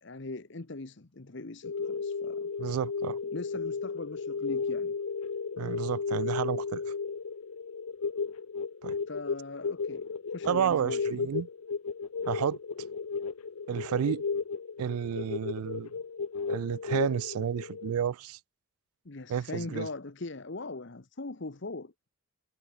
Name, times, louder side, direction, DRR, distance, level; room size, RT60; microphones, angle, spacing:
voice 1, 0.0-2.5 3.3-4.9 9.1-11.3 19.0-22.1, left 2 dB, 55° left, 1.0 m, -41 dB
sound 1, 1.6-17.9, left 5 dB, 80° left, 0.6 m, -34 dB
voice 2, 2.6-3.2 5.6-6.8 8.8-9.0 10.4-11.5 12.3-12.6 13.7-14.2 14.8-15.9 16.5-18.4 19.3-19.9, right 8 dB, 85° right, 0.3 m, -31 dB
head